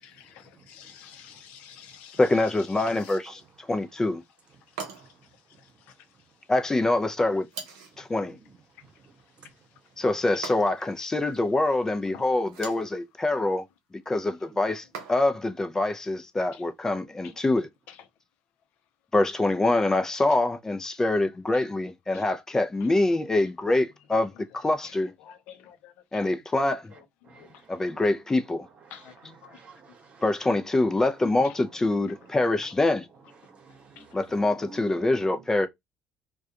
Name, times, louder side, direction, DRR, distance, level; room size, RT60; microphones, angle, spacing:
voice 1, 0.0-2.2 3.0-3.1 12.1-12.2 22.1-22.2 25.2-26.2 27.4-27.5 28.9-29.6 30.5-30.6 34.0-34.1, left 9 dB, 75° left, 0.5 m, -49 dB
voice 2, 2.2-4.2 6.5-7.5 8.0-8.4 10.0-13.6 14.1-17.7 19.1-25.1 26.1-26.9 27.7-28.7 30.2-33.1 34.1-35.7, left 2 dB, 20° left, 0.5 m, -25 dB
sound 1, 2.9-3.3 4.8-5.3 7.5-8.0 10.4-11.0 12.4-12.9 14.9-15.5, right 5 dB, 90° right, 0.7 m, -41 dB
voice 3, 8.8-9.5 27.2-27.9 28.9-30.2 33.4-35.4, right 4 dB, 45° right, 1.0 m, -50 dB
2.3 x 2.2 x 2.8 m
supercardioid pair, 70°, 3 cm